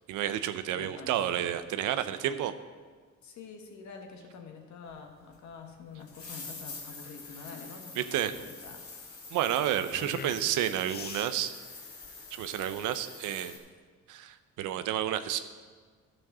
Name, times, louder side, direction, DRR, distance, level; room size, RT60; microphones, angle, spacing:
voice 1, 0.1-2.5 8.0-8.3 9.3-11.5 12.3-13.6 14.1-15.4, right 11 dB, 85° right, 11 dB, 0.7 m, -30 dB
voice 2, 0.7-1.2 3.2-9.2, left 5 dB, 70° left, 3 dB, 1.7 m, -47 dB
sound 1, 4.9-12.9, left 6 dB, 35° left, 0.5 m, -48 dB
sound 2, 5.3-5.4 6.0-13.6, left 3 dB, 50° left, 2.9 m, -46 dB
11.5 x 6.4 x 6.1 m, 1.5 s
cardioid pair, 90°, 30 cm